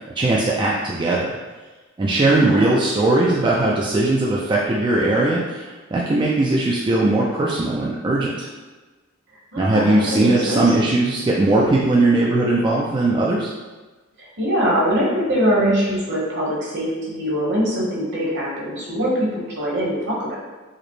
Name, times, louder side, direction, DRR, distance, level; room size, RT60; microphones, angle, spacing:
voice 1, 0.2-1.4 2.0-8.5 9.6-13.5, right 2 dB, 25° right, -4 dB, 0.3 m, -19 dB
voice 2, 2.3-2.8 9.5-10.7 14.2-20.4, equal, 60° right, -5 dB, 1.1 m, -22 dB
4.9 x 2.0 x 3.0 m, 1.3 s
head